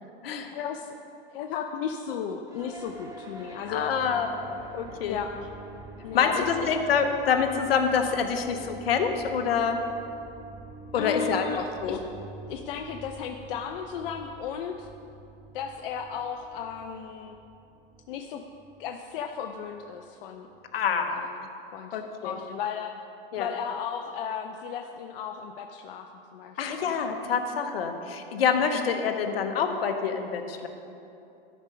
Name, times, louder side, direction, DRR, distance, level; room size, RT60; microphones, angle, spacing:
voice 1, 0.5-0.9 1.3-3.9 5.1-5.5 6.0-6.7 11.0-12.0 12.5-14.9 15.5-17.4 18.1-18.4 18.8-20.5 20.8-21.5 21.7-23.0 23.4-26.1 26.3-26.9 28.7-29.0, left 7 dB, 65° left, 5 dB, 0.6 m, -35 dB
sound 1, 2.5-20.8, right 2 dB, 10° right, 1.1 m, -47 dB
voice 2, 3.7-5.2 6.1-9.8 10.9-12.0 20.7-21.3 21.9-22.4 23.3-23.5 26.6-30.7, left 6 dB, 85° left, 6 dB, 1.0 m, -26 dB
13.0 x 5.1 x 5.5 m, 2.7 s
hypercardioid pair, 115°, 29 cm